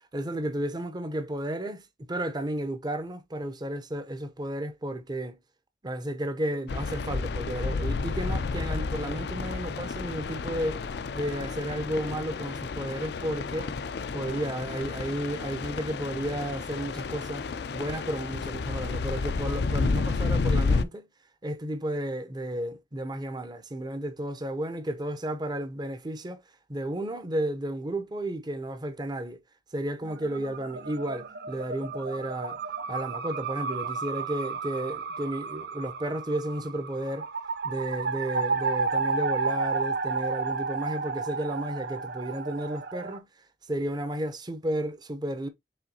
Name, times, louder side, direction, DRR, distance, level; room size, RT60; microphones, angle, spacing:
voice 1, 0.1-5.4 5.8-10.8 11.1-13.7 14.1-17.4 17.7-21.1 21.4-26.4 26.7-29.4 29.7-32.6 32.9-37.3 37.6-43.3 43.7-45.5, right 1 dB, 25° right, 0.7 m, -33 dB
sound 1, 6.7-20.8, left 4 dB, 65° left, 0.4 m, -31 dB
sound 2, 30.0-43.2, right 4 dB, 60° right, 0.5 m, -32 dB
5.0 x 3.7 x 2.8 m
head